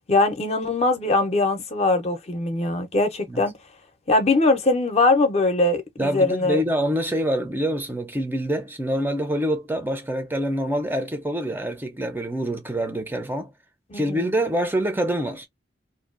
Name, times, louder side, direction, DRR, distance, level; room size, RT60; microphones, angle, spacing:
voice 1, 0.1-3.6 4.1-6.6 13.9-14.3, left 2 dB, 35° left, 0.6 m, -21 dB
voice 2, 6.0-13.5 13.9-15.5, right 1 dB, 10° right, 0.5 m, -26 dB
2.6 x 2.2 x 2.4 m
head